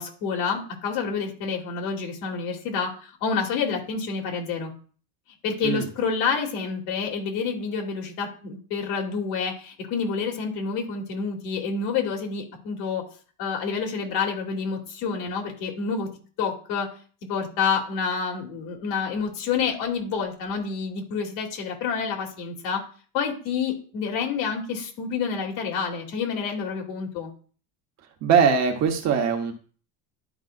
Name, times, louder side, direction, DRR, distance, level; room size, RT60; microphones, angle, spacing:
voice 1, 0.0-2.9 3.2-4.7 5.4-13.0 13.4-16.1 16.4-16.9 17.3-22.8 23.1-27.3, left 5 dB, 70° left, 1 dB, 2.6 m, -28 dB
voice 2, 28.2-29.5, right 6 dB, 35° right, 3 dB, 1.1 m, -21 dB
12.0 x 5.5 x 2.5 m, 0.41 s
cardioid pair, 170°, 48 cm